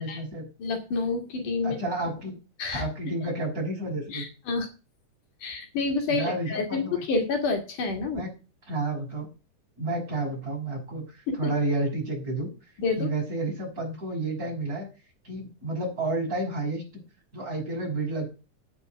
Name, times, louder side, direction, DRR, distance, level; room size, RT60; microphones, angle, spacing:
voice 1, 0.0-0.5 1.6-2.4 2.7-4.2 6.1-7.0 8.1-8.3 8.7-9.3 9.8-12.5 13.0-14.9 15.2-16.8 17.3-18.3, right 2 dB, 25° right, -1 dB, 6.7 m, -30 dB
voice 2, 0.6-1.8 2.6-2.8 4.1-4.7 5.4-8.3 11.3-11.4 12.8-13.1, left 4 dB, 75° left, 5 dB, 3.9 m, -28 dB
9.8 x 7.5 x 8.0 m, 0.32 s
omnidirectional pair, 3.6 m